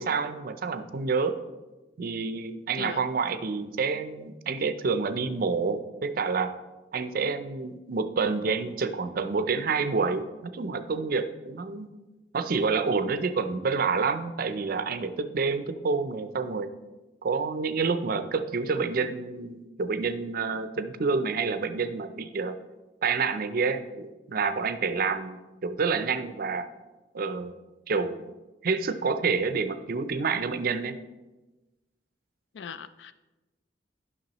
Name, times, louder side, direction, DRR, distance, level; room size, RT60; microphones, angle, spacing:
voice 1, 0.0-1.4 2.0-6.5 6.9-11.9 12.3-16.7 17.2-22.6 23.0-26.7 27.1-27.5 27.9-28.2 28.6-31.0, right 4 dB, 55° right, 11 dB, 0.5 m, -28 dB
voice 2, 32.5-33.1, left 6 dB, 85° left, 13 dB, 0.4 m, -39 dB
10.5 x 6.1 x 3.0 m, 1.1 s
head